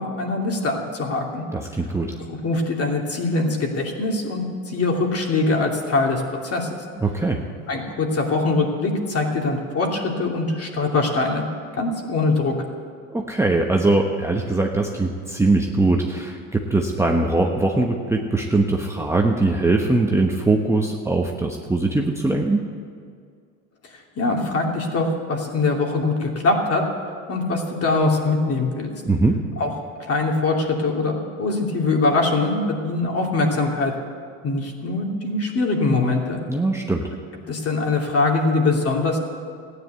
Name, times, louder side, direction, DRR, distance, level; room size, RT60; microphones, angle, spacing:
voice 1, 0.0-1.4 2.3-6.8 7.7-11.4 11.8-12.5 24.2-26.8 27.3-28.9 29.6-29.7 30.0-33.9 34.4-36.4 37.5-39.2, left 3 dB, 35° left, 1 dB, 2.8 m, -22 dB
voice 2, 1.5-2.2 7.0-7.4 13.1-22.6 29.0-29.4 36.5-37.1, right 2 dB, 5° right, 0 dB, 1.1 m, -21 dB
15.0 x 9.9 x 8.0 m, 2.2 s
hypercardioid pair, 90°, 40 cm